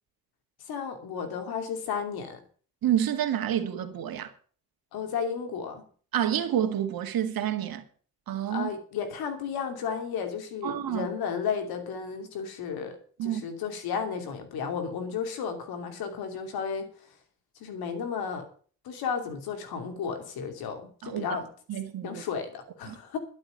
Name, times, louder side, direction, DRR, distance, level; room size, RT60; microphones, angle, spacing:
voice 1, 0.7-2.4 4.9-5.8 8.5-16.9 17.6-18.4 18.8-21.5 22.0-23.2, left 6 dB, 90° left, 2.7 m, -33 dB
voice 2, 2.8-4.3 6.1-7.8 8.3-8.7 10.6-11.1 13.2-13.4 21.0-21.3 21.7-22.2 22.9-23.0, right 10 dB, 75° right, 2.1 m, -28 dB
12.0 x 6.7 x 8.9 m
cardioid pair, 65°, 36 cm